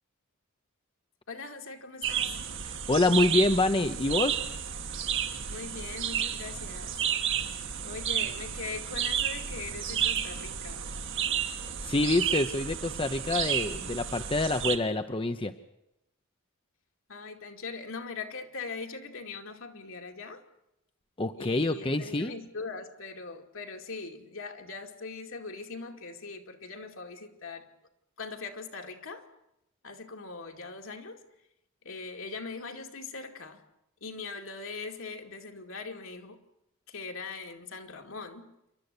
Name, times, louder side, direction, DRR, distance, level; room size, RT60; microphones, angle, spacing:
voice 1, 1.3-2.4 5.5-7.0 7.8-11.0 17.1-20.4 21.4-27.7 28.2-29.3 29.8-31.2 31.8-33.6 34.0-36.4 36.9-38.5, left 4 dB, 70° left, 4 dB, 2.5 m, -41 dB
sound 1, 2.0-14.8, right 8 dB, 60° right, 1.7 m, -32 dB
voice 2, 2.6-4.4 11.8-15.5 21.2-22.3, left 2 dB, 25° left, 8 dB, 0.8 m, -26 dB
28.5 x 12.0 x 9.8 m, 0.85 s
head